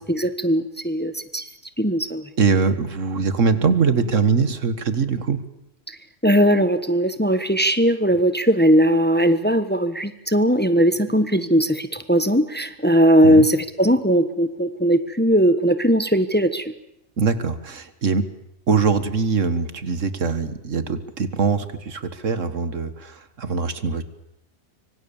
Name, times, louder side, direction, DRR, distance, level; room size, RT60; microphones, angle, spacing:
voice 1, 0.0-1.5 1.8-2.2 5.9-6.0 6.2-16.7, equal, 10° left, 11 dB, 1.2 m, -19 dB
voice 2, 2.4-5.4 13.2-13.5 17.2-18.2 18.7-24.0, right 5 dB, 80° right, 12 dB, 2.0 m, -22 dB
25.0 x 25.0 x 7.2 m, 0.81 s
omnidirectional pair, 1.3 m